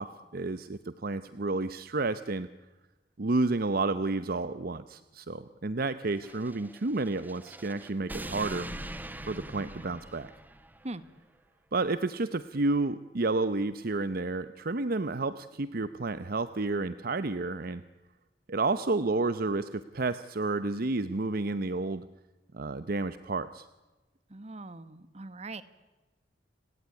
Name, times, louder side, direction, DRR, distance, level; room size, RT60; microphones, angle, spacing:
voice 1, 0.0-2.5 3.2-8.7 9.3-10.3 11.7-17.8 18.5-22.0 22.5-23.7, right 3 dB, 55° right, 13 dB, 0.8 m, -30 dB
sound 1, 6.1-10.9, right 1 dB, 10° right, 1.2 m, -42 dB
voice 2, 24.3-25.6, right 2 dB, 40° right, 14 dB, 1.4 m, -41 dB
30.0 x 17.5 x 9.6 m, 1.1 s
head